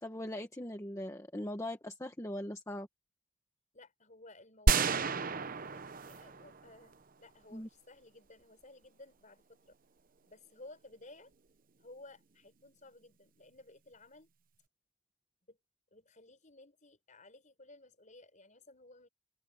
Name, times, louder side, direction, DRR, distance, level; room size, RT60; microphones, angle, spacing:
voice 1, 0.0-2.9 7.5-7.7, left 1 dB, 15° left, 1.2 m, -40 dB
voice 2, 3.7-9.8 10.2-11.3 11.8-14.3 15.5-15.6 15.9-19.1, left 2 dB, 40° left, 5.7 m, -56 dB
sound 1, 4.7-6.9, right 4 dB, 45° right, 0.9 m, -31 dB
open air
head